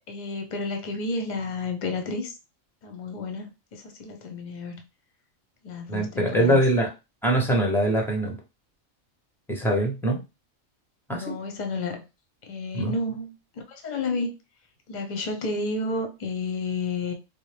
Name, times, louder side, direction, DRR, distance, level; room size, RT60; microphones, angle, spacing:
voice 1, 0.1-2.3 2.8-4.8 5.6-6.6 11.1-12.0 12.5-13.3 13.7-14.3 14.9-17.1, left 3 dB, 45° left, 5 dB, 0.7 m, -31 dB
voice 2, 5.9-6.9 7.2-8.4 9.5-10.2 11.1-11.3 12.7-12.9, right 1 dB, 5° left, 0 dB, 0.5 m, -23 dB
4.2 x 2.0 x 3.2 m, 0.27 s
omnidirectional pair, 1.4 m